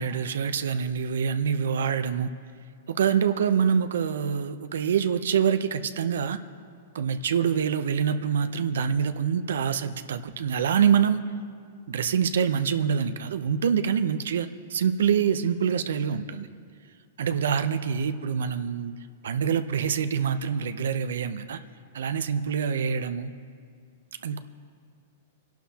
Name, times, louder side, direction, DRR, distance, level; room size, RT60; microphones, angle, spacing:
voice 1, 0.0-2.3 2.9-6.4 6.9-11.2 11.9-16.5 17.2-18.9 19.2-21.6 21.9-23.3 24.2-24.4, right 7 dB, 80° right, 10 dB, 0.6 m, -25 dB
27.5 x 11.5 x 2.9 m, 2.2 s
hypercardioid pair, 150°, 0 cm